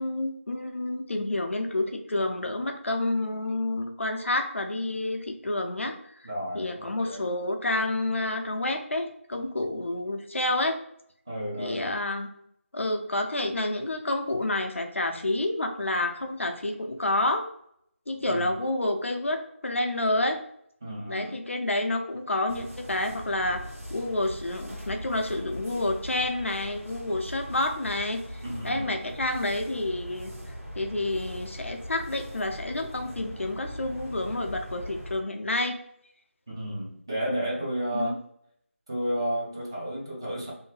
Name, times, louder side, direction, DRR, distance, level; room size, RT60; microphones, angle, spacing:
voice 1, 0.0-6.3 6.5-10.8 11.6-12.3 12.7-17.5 18.1-20.4 21.1-30.3 30.8-35.8 37.9-38.2, left 2 dB, 65° left, 4 dB, 0.6 m, -29 dB
voice 2, 6.2-7.3 11.3-11.9 18.3-18.5 20.8-21.3 28.4-28.9 36.5-38.2 38.9-40.5, right 1 dB, 20° right, -4 dB, 0.5 m, -32 dB
sound 1, 22.5-35.2, equal, 85° right, 1.2 m, -41 dB
2.6 x 2.1 x 3.2 m, 0.70 s
figure-of-eight pair, 175°, 7 cm